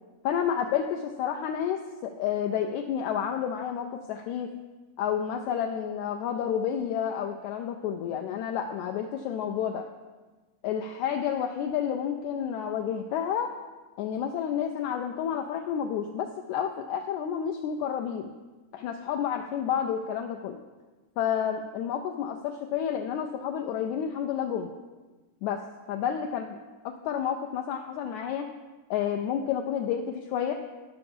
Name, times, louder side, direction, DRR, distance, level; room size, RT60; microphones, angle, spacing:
voice 1, 0.2-0.8 1.2-4.5 5.0-9.9 10.6-13.5 14.0-18.3 18.7-20.6 21.2-24.7 25.4-25.6 25.9-26.6 26.9-28.5 28.9-30.5, left 8 dB, 80° left, 3 dB, 1.7 m, -30 dB
11.5 x 5.8 x 5.3 m, 1.2 s
omnidirectional pair, 3.8 m